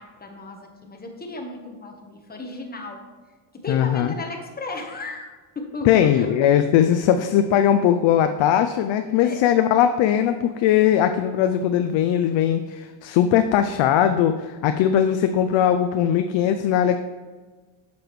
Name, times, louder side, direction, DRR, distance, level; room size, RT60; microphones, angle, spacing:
voice 1, 0.0-3.0 3.5-6.3 9.2-9.4, left 3 dB, 20° left, 3 dB, 1.1 m, -35 dB
voice 2, 3.7-4.1 5.8-17.0, left 10 dB, 65° left, 8 dB, 0.5 m, -19 dB
7.7 x 7.0 x 3.1 m, 1.3 s
cardioid pair, 105°, 48 cm